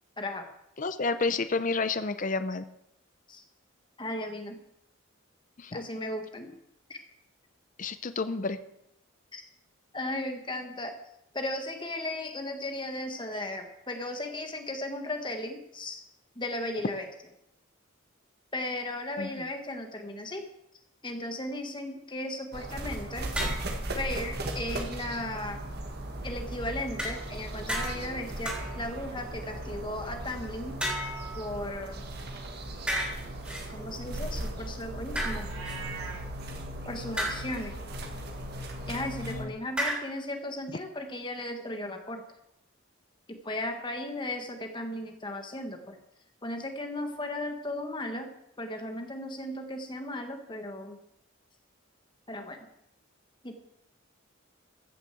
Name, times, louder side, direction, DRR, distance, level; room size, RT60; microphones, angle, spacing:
voice 1, 0.8-2.6 5.6-5.8 7.8-8.6 19.2-19.4 39.2-39.5 39.9-40.0, left 3 dB, 40° left, 11 dB, 0.6 m, -30 dB
voice 2, 4.0-4.6 5.7-6.6 6.9-7.0 9.3-9.4 9.9-10.9 11.3-16.0 16.3-17.1 18.5-20.5 21.0-23.3 24.0-25.6 26.2-30.8 31.3-32.0 33.7-35.5 36.8-37.8 38.9-42.2 43.3-46.0 46.4-48.3 48.6-51.0 52.3-52.6 53.4-53.5, left 1 dB, 20° left, 5 dB, 1.5 m, -36 dB
sound 1, 22.5-39.5, right 1 dB, 50° right, 1.7 m, -37 dB
sound 2, 23.4-23.8 27.0-27.4 27.7-28.1 28.5-29.0 30.8-31.9 32.9-33.6 35.2-35.8 37.2-37.6 39.8-40.0, equal, 5° right, 3.4 m, -33 dB
Livestock farm animals working animals, 35.4-36.3, right 4 dB, 75° right, 3.4 m, -40 dB
14.5 x 6.7 x 7.7 m, 0.80 s
head